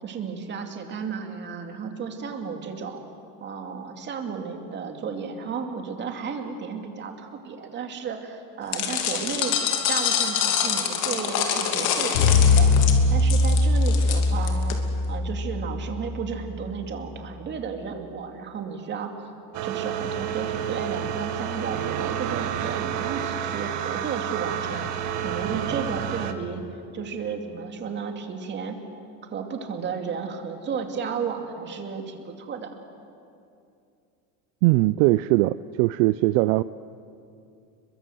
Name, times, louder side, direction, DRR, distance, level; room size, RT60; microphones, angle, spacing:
voice 1, 0.0-3.0 3.4-9.6 9.9-12.7 13.1-14.8 15.1-19.1 19.6-26.6 26.9-28.8 29.3-32.7, right 6 dB, 25° right, 4 dB, 2.5 m, -33 dB
sound 1, 8.7-14.7, left 8 dB, 50° left, 3.0 m, -26 dB
sound 2, 12.1-16.5, left 3 dB, 75° left, 4.2 m, -21 dB
sound 3, 19.5-26.3, right 9 dB, 45° right, 1.8 m, -29 dB
voice 2, 34.6-36.6, right 19 dB, 65° right, 16 dB, 0.6 m, -20 dB
30.0 x 23.0 x 7.7 m, 2.5 s
cardioid pair, 160°, 39 cm